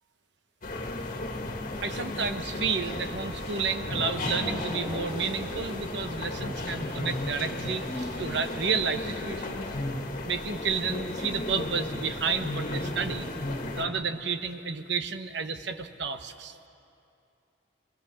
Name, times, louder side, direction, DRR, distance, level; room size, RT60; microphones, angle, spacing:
sound 1, 0.6-13.8, left 2 dB, 45° left, 1.9 m, -34 dB
voice 1, 1.8-9.7 10.2-13.3 13.7-16.6, right 5 dB, 65° right, 8 dB, 1.0 m, -31 dB
sound 2, 2.8-9.5, equal, 30° right, 5.2 m, -45 dB
24.5 x 20.0 x 7.1 m, 2.6 s
head